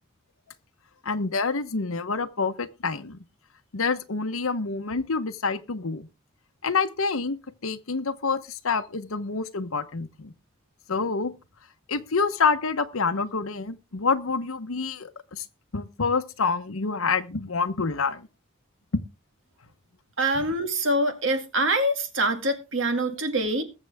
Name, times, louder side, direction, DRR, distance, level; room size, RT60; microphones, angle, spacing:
voice 1, 1.0-3.2 3.7-6.1 6.6-7.4 7.6-10.3 10.9-11.3 11.9-15.4 15.7-18.3, left 4 dB, 80° left, 1.0 m, -27 dB
voice 2, 20.2-23.6, right 1 dB, 65° right, 2.2 m, -25 dB
20.5 x 7.4 x 3.5 m
head